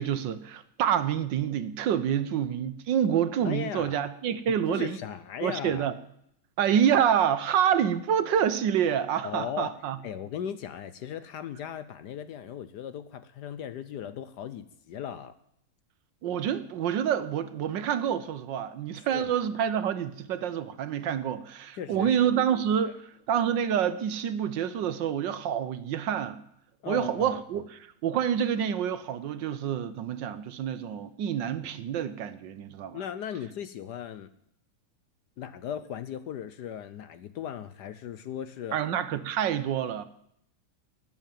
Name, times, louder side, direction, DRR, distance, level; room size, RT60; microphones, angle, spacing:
voice 1, 0.0-5.0 5.4-5.9 6.6-10.0 16.2-26.4 26.9-33.0 38.7-40.0, right 9 dB, 70° right, 1.4 m, -27 dB
voice 2, 3.4-4.1 4.5-5.9 9.2-9.8 10.0-15.4 18.9-19.3 21.7-22.3 22.8-22.9 26.8-27.6 32.9-34.3 35.4-38.8, left 9 dB, 65° left, 1.1 m, -37 dB
12.5 x 9.6 x 9.1 m
omnidirectional pair, 2.2 m